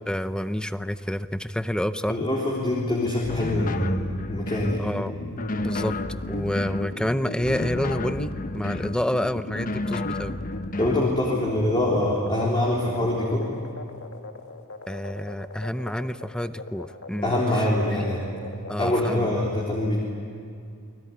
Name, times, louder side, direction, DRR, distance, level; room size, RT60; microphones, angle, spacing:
voice 1, 0.1-2.2 4.8-5.2 5.6-6.0 6.3-10.4 14.9-17.3 17.9-18.0 18.7-19.3, equal, 5° left, 11 dB, 0.6 m, -28 dB
voice 2, 2.1-4.0 4.3-4.9 10.8-13.5 17.2-18.2 18.8-20.0, left 1 dB, 25° left, -3 dB, 3.7 m, -24 dB
sound 1, 3.2-4.8 5.3-6.9 7.4-9.0 9.5-11.1, left 2 dB, 40° left, 0.9 m, -31 dB
sound 2, 4.6-19.4, left 2 dB, 70° left, 1.9 m, -38 dB
29.5 x 20.5 x 9.6 m, 2.4 s
head